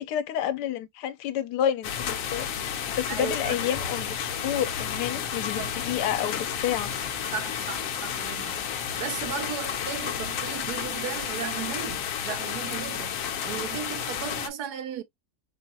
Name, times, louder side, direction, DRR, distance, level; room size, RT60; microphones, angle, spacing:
voice 1, 0.0-6.9, left 10 dB, 85° left, 1.2 m, -30 dB
sound 1, 1.8-14.5, left 8 dB, 65° left, 0.9 m, -31 dB
voice 2, 3.1-3.6 5.3-5.7 7.3-13.2 13.4-15.0, right 9 dB, 80° right, 1.2 m, -36 dB
4.3 x 2.2 x 2.6 m
omnidirectional pair, 1.7 m